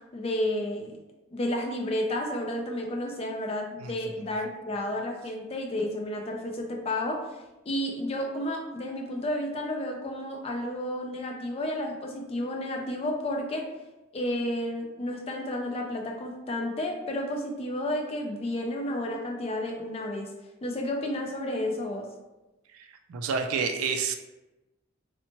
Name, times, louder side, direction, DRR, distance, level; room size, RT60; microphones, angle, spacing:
voice 1, 0.1-1.0 1.3-7.4 7.7-13.7 14.1-20.3 20.6-22.1, left 1 dB, 25° left, 2 dB, 0.3 m, -31 dB
voice 2, 22.7-24.2, right 5 dB, 80° right, 5 dB, 0.3 m, -29 dB
2.9 x 2.1 x 2.8 m, 1.0 s
head